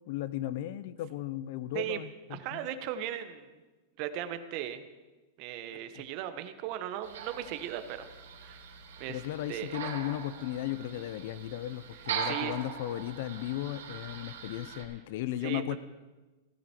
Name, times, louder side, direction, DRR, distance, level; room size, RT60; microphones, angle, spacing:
voice 1, 0.1-2.7 9.1-15.8, left 13 dB, 55° left, 16 dB, 0.7 m, -36 dB
voice 2, 2.3-3.5 4.0-4.8 5.4-8.1 8.4-8.7 9.0-9.2 9.5-9.7 12.2-12.5 15.4-15.6, right 11 dB, 40° right, 10 dB, 1.2 m, -37 dB
sound 1, 7.0-14.8, right 7 dB, 85° right, 3.5 m, -41 dB
17.0 x 13.5 x 4.5 m, 1.2 s
supercardioid pair, 150°, 0 cm